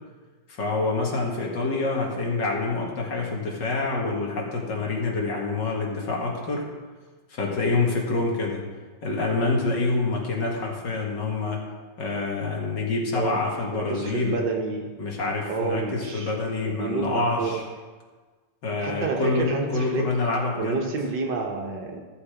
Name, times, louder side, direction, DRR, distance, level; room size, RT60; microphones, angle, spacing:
voice 1, 0.5-6.6 7.3-8.6 9.0-11.6 12.0-14.5 15.0-17.7 18.6-20.8, left 3 dB, 55° left, -1 dB, 2.3 m, -26 dB
voice 2, 13.7-14.9 15.5-16.3 16.6-17.6 18.8-20.0 20.6-22.0, right 4 dB, 60° right, 1 dB, 1.7 m, -29 dB
14.0 x 6.6 x 5.0 m, 1.4 s
omnidirectional pair, 2.3 m